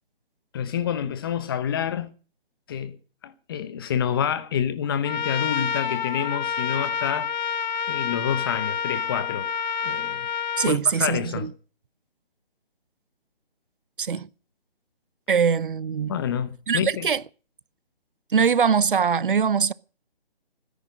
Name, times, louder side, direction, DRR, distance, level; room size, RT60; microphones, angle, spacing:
voice 1, 0.5-2.1 2.7-3.0 3.2-7.3 7.9-9.5 9.8-10.3 10.6-11.5 16.1-17.0, left 8 dB, 25° left, 1.1 m, -28 dB
Trumpet, 5.0-10.7, left 7 dB, 45° left, 1.2 m, -28 dB
voice 2, 10.6-11.5 14.0-14.3 15.3-16.2 16.7-17.2 18.3-19.7, right 6 dB, 55° right, 0.8 m, -22 dB
17.5 x 10.5 x 6.5 m
figure-of-eight pair, 155°, 31 cm